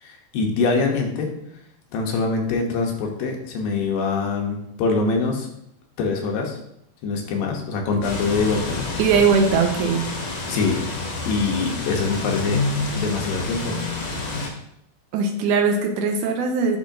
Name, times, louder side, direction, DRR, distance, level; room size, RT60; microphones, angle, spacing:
voice 1, 0.0-1.3 1.9-5.5 6.0-6.6 7.0-8.8 10.5-10.8 11.3-12.6 13.0-13.8, left 4 dB, 80° left, 2 dB, 2.7 m, -24 dB
sound 1, 8.0-14.5, left 3 dB, 60° left, 2.0 m, -28 dB
voice 2, 9.0-10.1 15.1-16.8, right 5 dB, 80° right, 4 dB, 1.9 m, -20 dB
10.5 x 4.8 x 2.7 m, 0.77 s
omnidirectional pair, 4.1 m